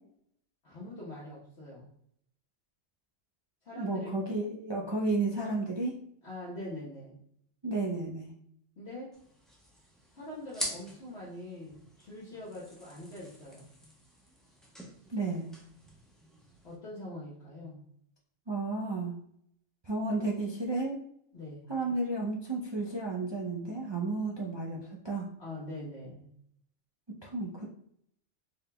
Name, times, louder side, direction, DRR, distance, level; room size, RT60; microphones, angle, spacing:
voice 1, 0.6-2.0 3.6-4.1 6.2-7.2 8.8-9.1 10.1-13.7 16.6-17.8 21.3-21.6 25.4-26.3, left 1 dB, 55° left, -8 dB, 1.3 m, -43 dB
voice 2, 3.7-6.0 7.6-8.3 15.1-15.5 18.5-19.1 19.8-21.0 21.7-25.3 27.2-27.6, right 2 dB, 40° right, -3 dB, 0.3 m, -32 dB
sound 1, 9.1-16.8, equal, ahead, 0.8 m, -45 dB
4.4 x 3.6 x 2.2 m, 0.69 s
omnidirectional pair, 1.3 m